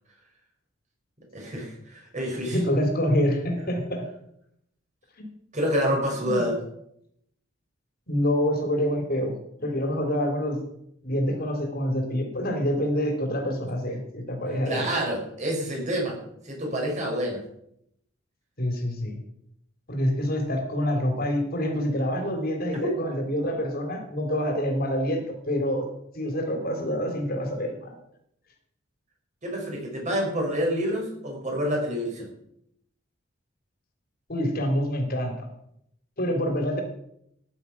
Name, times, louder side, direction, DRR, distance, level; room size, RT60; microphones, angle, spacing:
voice 1, 1.3-2.6 5.5-6.6 14.7-16.2 16.4-17.4 29.4-32.3, equal, 40° right, 0 dB, 5.7 m, -28 dB
voice 2, 2.5-4.1 5.2-5.3 6.2-6.5 8.1-10.6 11.0-14.9 18.6-19.2 19.9-27.9 34.3-35.5 36.2-36.8, equal, 50° left, 3 dB, 3.5 m, -27 dB
14.0 x 10.5 x 6.0 m, 0.74 s
head